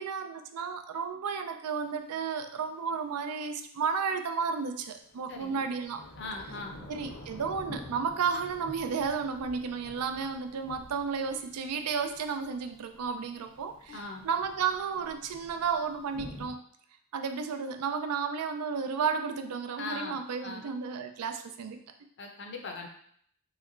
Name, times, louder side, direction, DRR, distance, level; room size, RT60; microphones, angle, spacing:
voice 1, 0.0-6.0 6.9-16.6 17.1-21.8, right 6 dB, 90° right, 7 dB, 0.4 m, -33 dB
Thunder / Rain, 1.7-1.8 4.8-16.5, equal, 70° left, 1.1 m, -49 dB
voice 2, 5.3-5.7 6.2-6.9 13.9-14.3 19.8-20.7 22.2-22.9, left 3 dB, 50° left, 2 dB, 0.6 m, -40 dB
3.2 x 3.0 x 3.8 m, 0.63 s
head